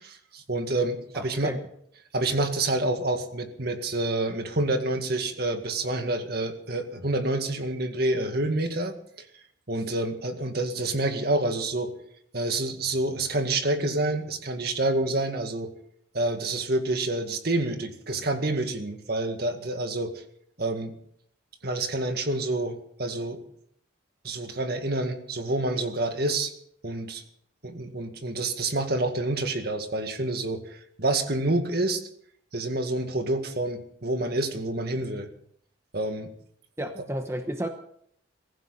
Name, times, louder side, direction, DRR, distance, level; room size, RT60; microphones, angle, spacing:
voice 1, 0.0-1.5 2.1-9.3 9.7-11.9 12.3-15.7 16.1-20.2 20.6-20.9 21.6-23.4 24.2-26.5 26.8-27.2 27.6-32.0 32.5-35.3 35.9-36.3 36.8-36.9, right 2 dB, 50° right, 6 dB, 2.0 m, -28 dB
voice 2, 1.1-1.6 36.8-37.7, right 1 dB, 15° right, 5 dB, 1.0 m, -32 dB
23.0 x 15.0 x 4.2 m, 0.66 s
head